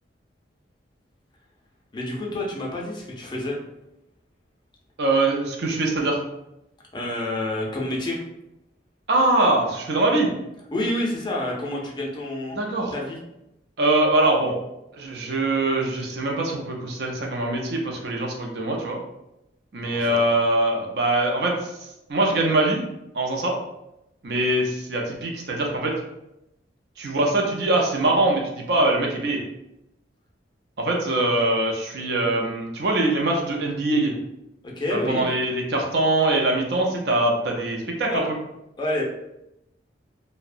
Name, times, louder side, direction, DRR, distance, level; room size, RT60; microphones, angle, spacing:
voice 1, 1.9-3.6 6.9-8.2 10.7-12.6 12.9-13.2 19.8-20.2 34.6-35.2 38.1-38.2 38.8-39.0, left 1 dB, 25° left, -2 dB, 0.4 m, -28 dB
voice 2, 5.0-6.2 9.1-10.3 12.5-12.9 13.8-14.6 14.9-19.0 19.7-22.8 23.1-23.6 24.2-26.0 27.0-29.4 30.8-34.2 34.9-38.2, right 2 dB, 60° right, 0 dB, 0.5 m, -23 dB
2.7 x 2.1 x 2.4 m, 0.87 s
head